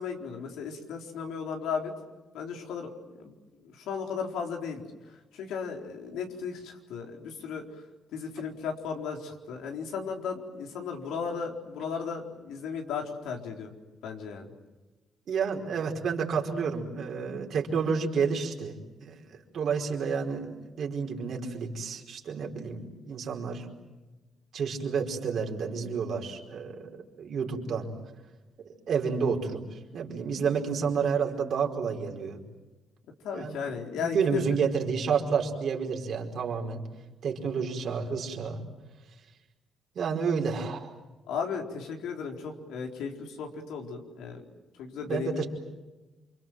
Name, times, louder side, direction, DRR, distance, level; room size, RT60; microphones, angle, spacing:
voice 1, 0.0-1.9 2.3-2.9 3.2-3.3 3.6-7.6 8.1-13.7 14.0-14.5 33.2-34.4 41.3-44.4 44.8-45.5, left 6 dB, 90° left, 2 dB, 4.2 m, -35 dB
voice 2, 15.3-19.1 19.5-23.7 24.5-27.9 28.9-32.4 33.3-33.6 33.9-36.8 37.2-38.7 39.9-40.9 45.0-45.5, right 6 dB, 60° right, 1 dB, 4.7 m, -30 dB
28.5 x 25.0 x 7.7 m, 1.2 s
cardioid pair, 90°, 0 cm